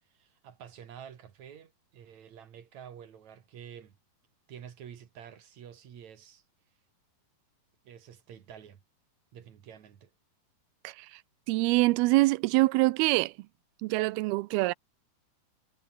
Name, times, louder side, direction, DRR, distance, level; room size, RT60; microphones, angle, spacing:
voice 1, 0.0-4.0 4.5-6.4 7.8-8.8 9.3-10.1, right 8 dB, 55° right, 2.9 m, -49 dB
voice 2, 10.8-11.2 11.5-13.3 13.8-14.7, right 21 dB, 85° right, 2.6 m, -25 dB
omnidirectional pair, 4.4 m